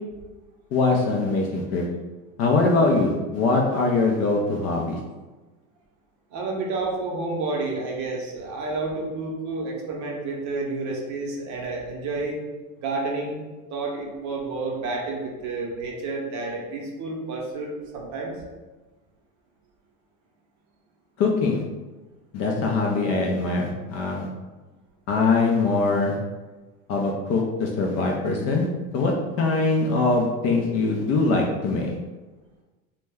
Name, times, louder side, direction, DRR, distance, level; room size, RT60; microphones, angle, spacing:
voice 1, 0.7-1.9 2.4-5.0 21.2-21.6 22.3-24.3 25.1-26.2 26.9-28.7 28.9-32.0, left 3 dB, 40° left, 0 dB, 0.4 m, -22 dB
voice 2, 6.3-12.4 12.8-13.4 13.7-18.3, right 3 dB, 45° right, -1 dB, 0.7 m, -30 dB
2.1 x 2.1 x 3.4 m, 1.2 s
supercardioid pair, 110°, 42 cm